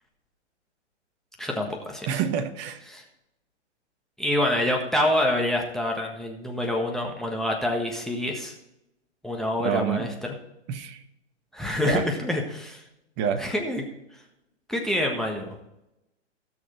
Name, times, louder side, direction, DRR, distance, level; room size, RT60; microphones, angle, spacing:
voice 1, 1.4-2.1 2.9-3.0 4.2-8.5 9.2-10.1 11.5-12.8 13.4-13.8 14.7-15.6, left 1 dB, ahead, 1 dB, 1.4 m, -26 dB
voice 2, 2.1-2.8 9.6-10.1 10.7-11.0 11.8-12.1 13.2-13.4, right 8 dB, 30° right, 7 dB, 1.3 m, -27 dB
17.0 x 6.5 x 4.4 m, 0.85 s
hypercardioid pair, 125°, 36 cm